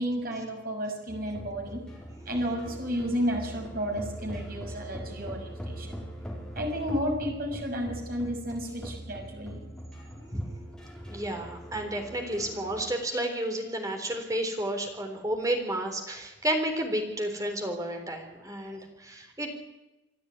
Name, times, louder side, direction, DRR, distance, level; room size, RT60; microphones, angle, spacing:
voice 1, 0.0-1.8 2.3-6.0 6.6-9.6, equal, 50° right, 2 dB, 6.2 m, -32 dB
sound 1, 1.1-12.9, equal, 5° left, 4.2 m, -41 dB
voice 2, 11.0-19.5, right 1 dB, 20° right, 4 dB, 3.9 m, -31 dB
26.0 x 12.5 x 9.7 m, 1.0 s
head